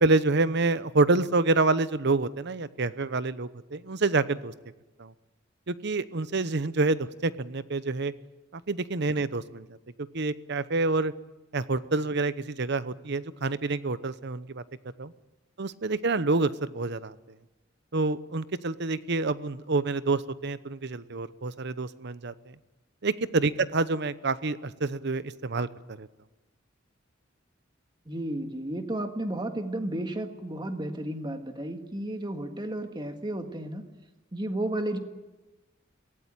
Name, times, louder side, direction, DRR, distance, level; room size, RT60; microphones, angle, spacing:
voice 1, 0.0-4.5 5.0-5.1 5.7-8.1 8.5-9.7 10.0-11.1 11.5-14.6 15.0-15.1 15.6-17.1 17.9-22.5 23.0-25.7 26.0-26.1, right 3 dB, 60° right, 15 dB, 0.9 m, -27 dB
voice 2, 28.1-33.8 34.3-35.0, right 1 dB, 25° right, 6 dB, 1.8 m, -33 dB
23.5 x 17.0 x 9.0 m, 1.1 s
head